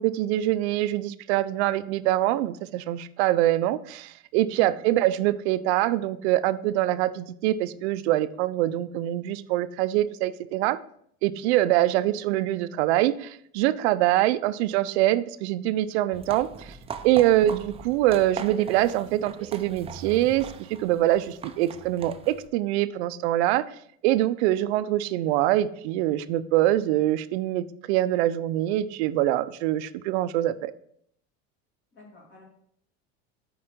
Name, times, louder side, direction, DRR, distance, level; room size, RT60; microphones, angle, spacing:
voice 1, 0.0-10.8 11.2-16.8 17.0-20.5 20.8-23.6 24.0-30.7, right 14 dB, 75° right, 16 dB, 0.5 m, -24 dB
voice 2, 4.5-4.8 17.2-17.4 31.9-32.4, left 3 dB, 35° left, -1 dB, 2.3 m, -47 dB
sound 1, 16.1-22.5, right 6 dB, 20° right, 0.4 m, -40 dB
5.1 x 4.7 x 4.3 m, 0.68 s
supercardioid pair, 100°, 33 cm